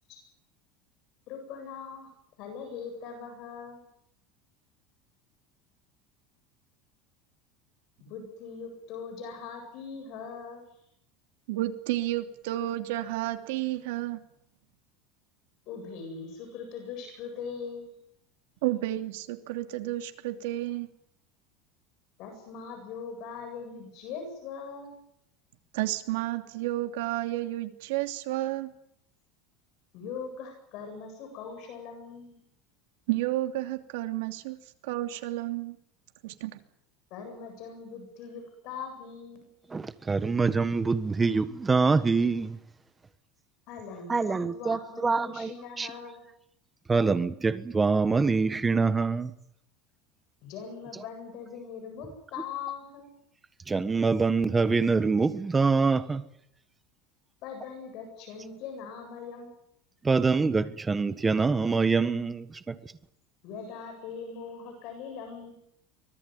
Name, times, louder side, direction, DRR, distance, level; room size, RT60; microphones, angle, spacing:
voice 1, 1.3-2.1 2.4-3.8 8.0-10.6 15.7-18.0 22.2-25.0 29.9-32.4 37.1-39.4 43.7-46.2 50.4-53.1 57.4-59.5 63.4-65.5, left 6 dB, 45° left, 7.9 m, -41 dB
voice 2, 11.5-14.2 18.6-20.9 25.7-28.7 33.1-34.6 34.8-35.8 36.2-36.6, right 15 dB, 75° right, 2.9 m, -31 dB
voice 3, 39.7-42.6 44.1-45.9 46.9-49.3 53.7-56.2 60.0-62.8, right 4 dB, 10° right, 1.4 m, -25 dB
24.5 x 19.5 x 9.5 m
cardioid pair, 175°, 0 cm